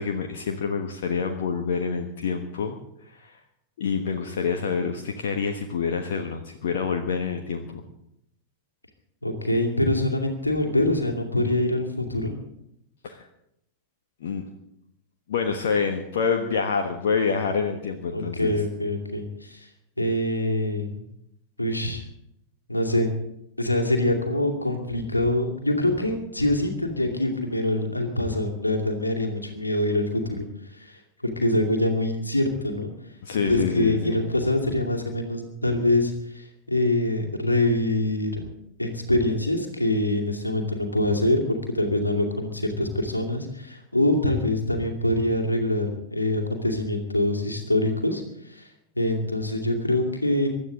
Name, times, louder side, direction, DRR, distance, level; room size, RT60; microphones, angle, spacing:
voice 1, 0.0-2.8 3.1-3.4 3.8-7.8 13.0-13.2 14.2-14.4 15.3-18.6 33.2-34.2, left 5 dB, 60° left, 4 dB, 1.3 m, -27 dB
voice 2, 9.2-12.3 18.1-19.7 20.0-21.0 21.6-22.1 22.7-23.2 23.6-30.5 30.7-32.9 33.5-38.3 38.8-48.7 48.9-50.5, left 1 dB, 85° left, 3 dB, 2.5 m, -25 dB
24.0 x 12.0 x 3.9 m, 0.79 s
figure-of-eight pair, 90°, 0 cm